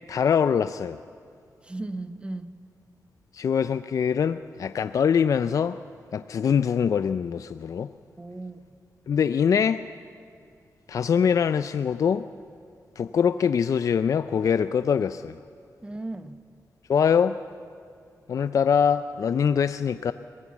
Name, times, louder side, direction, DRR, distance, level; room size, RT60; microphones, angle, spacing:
voice 1, 0.1-1.0 3.3-5.8 6.1-7.9 9.1-9.8 10.9-12.2 13.0-15.4 16.9-17.4 18.3-20.1, left 7 dB, 60° left, 0.4 m, -23 dB
voice 2, 1.6-2.6 8.2-8.6 15.8-16.5, right 2 dB, 15° right, 1.0 m, -36 dB
22.5 x 17.5 x 7.2 m
wide cardioid pair, 100°, 6 cm